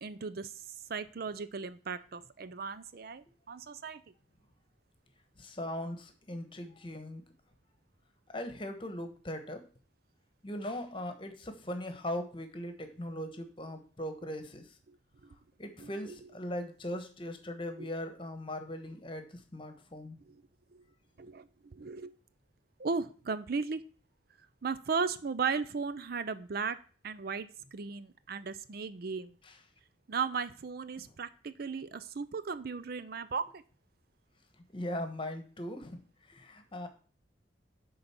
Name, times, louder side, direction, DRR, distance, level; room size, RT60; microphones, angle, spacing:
voice 1, 0.0-4.0 14.9-15.0 15.8-16.2 17.8-17.9 20.3-20.4 20.7-20.8 21.2-22.2 22.8-23.8 24.6-26.8 27.0-29.3 30.1-33.6, right 5 dB, 50° right, 14 dB, 0.5 m, -36 dB
voice 2, 5.4-7.2 8.3-9.6 10.4-14.8 15.6-20.2 29.4-29.5 34.7-36.9, left 1 dB, 25° left, 7 dB, 1.2 m, -39 dB
10.0 x 4.0 x 7.0 m, 0.40 s
head